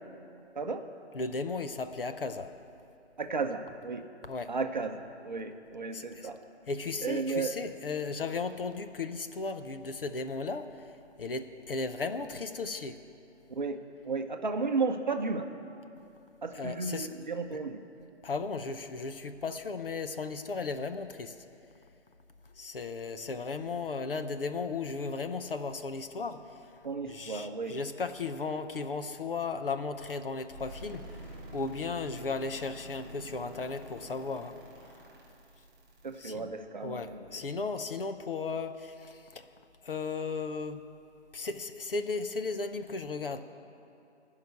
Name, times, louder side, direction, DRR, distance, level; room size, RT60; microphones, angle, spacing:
voice 1, 1.1-2.5 4.2-4.5 5.9-6.3 6.7-10.8 11.2-13.0 16.5-17.2 18.2-21.4 22.6-26.7 27.1-34.5 36.2-36.5 36.8-39.5 39.8-40.8 41.3-43.4, left 4 dB, 55° left, 9 dB, 0.7 m, -35 dB
voice 2, 3.2-4.1 4.5-6.4 7.0-7.5 13.5-13.8 14.0-15.5 16.4-17.8 26.8-27.8 36.0-37.2, right 4 dB, 40° right, 6 dB, 0.8 m, -33 dB
sound 1, 30.5-36.3, right 2 dB, 20° right, 3.4 m, -47 dB
15.5 x 5.7 x 9.3 m, 2.8 s
hypercardioid pair, 175°, 34 cm